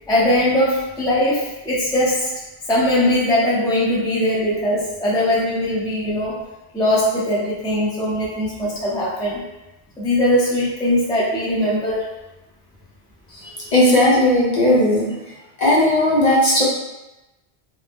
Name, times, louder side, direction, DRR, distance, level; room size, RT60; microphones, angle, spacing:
voice 1, 0.1-2.3 2.7-6.3 6.7-9.4 10.0-12.1, left 1 dB, 5° left, -7 dB, 0.4 m, -20 dB
voice 2, 13.3-15.1 15.6-16.6, left 1 dB, 45° left, -7 dB, 0.8 m, -16 dB
2.7 x 2.0 x 3.4 m, 0.99 s
omnidirectional pair, 1.1 m